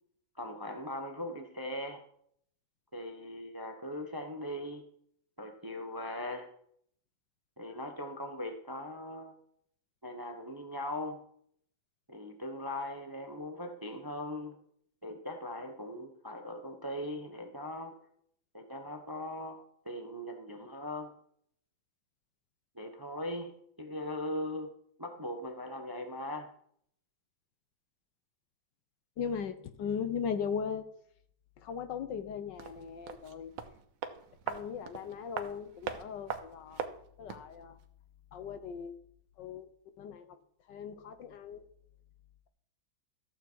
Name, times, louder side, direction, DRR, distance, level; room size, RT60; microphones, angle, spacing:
voice 1, 0.4-2.0 2.9-4.8 5.4-6.5 7.6-9.4 10.0-11.2 12.1-14.6 15.0-18.0 18.5-19.6 19.8-21.1 22.7-24.7 25.0-26.5, left 1 dB, 15° right, 5 dB, 0.7 m, -40 dB
voice 2, 29.2-30.9 31.6-33.5 34.5-36.9 37.2-37.8 38.3-38.9 39.4-39.7 40.0-40.4 40.7-41.6, left 7 dB, 65° left, 10 dB, 1.5 m, -38 dB
sound 1, 32.5-37.5 37.8-37.9, right 8 dB, 90° right, 1.8 m, -41 dB
14.5 x 7.4 x 4.6 m, 0.65 s
omnidirectional pair, 2.1 m